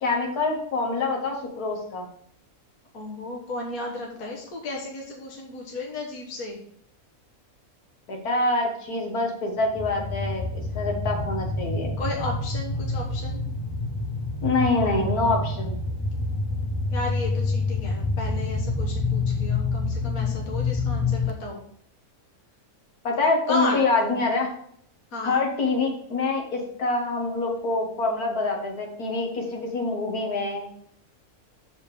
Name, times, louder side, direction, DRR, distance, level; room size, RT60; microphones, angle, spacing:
voice 1, 0.0-2.1 8.1-11.9 14.4-15.8 23.0-24.5 25.2-30.7, left 3 dB, 85° left, 1 dB, 2.1 m, -26 dB
voice 2, 2.9-6.6 12.0-13.4 16.9-21.6 23.5-24.2 25.1-25.4, left 2 dB, 70° left, -1 dB, 1.8 m, -33 dB
sound 1, 9.6-21.3, left 3 dB, 30° left, 0.5 m, -27 dB
7.0 x 5.5 x 4.9 m, 0.64 s
omnidirectional pair, 1.5 m